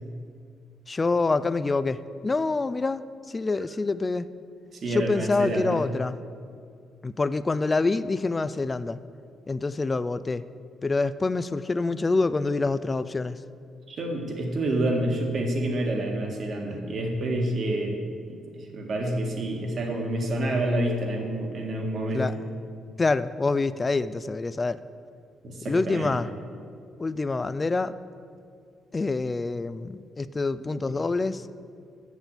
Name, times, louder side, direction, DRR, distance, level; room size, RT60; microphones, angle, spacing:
voice 1, 0.9-4.3 4.9-6.2 7.0-9.0 9.5-10.4 10.8-13.4 22.1-22.3 23.0-24.8 25.7-26.3 27.0-28.0 28.9-31.5, left 3 dB, 25° left, 15 dB, 0.3 m, -26 dB
voice 2, 4.7-5.8 13.9-18.0 18.3-22.3 25.4-26.1, right 1 dB, 55° right, 1 dB, 1.8 m, -28 dB
8.1 x 6.9 x 7.2 m, 2.3 s
cardioid pair, 90°, 0 cm